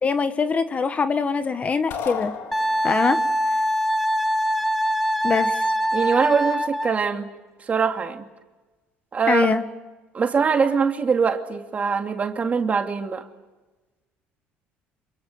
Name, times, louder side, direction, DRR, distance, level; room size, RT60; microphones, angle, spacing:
voice 1, 0.0-2.3 2.8-3.2 5.2-5.6 9.3-9.6, left 5 dB, 30° left, 1.6 m, -22 dB
sound 1, 1.9-3.2, left 7 dB, 65° left, 4.1 m, -33 dB
Wind instrument woodwind instrument, 2.5-7.0, equal, ahead, 1.8 m, -23 dB
voice 2, 5.9-7.3 7.7-8.2 9.1-9.5 10.1-13.2, right 5 dB, 35° right, 2.6 m, -22 dB
27.5 x 25.0 x 8.1 m
supercardioid pair, 95°, 4 cm